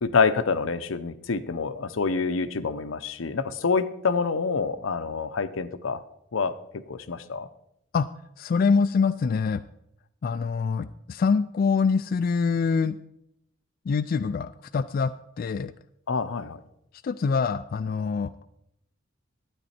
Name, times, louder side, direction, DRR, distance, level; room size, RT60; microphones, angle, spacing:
voice 1, 0.0-6.0 6.3-7.5 16.1-16.6, left 4 dB, 80° left, 12 dB, 0.7 m, -27 dB
voice 2, 8.4-9.6 10.2-13.0 13.9-15.1 15.4-15.7 17.0-18.3, left 5 dB, 45° left, 10 dB, 0.3 m, -24 dB
12.0 x 9.6 x 4.3 m, 0.80 s
head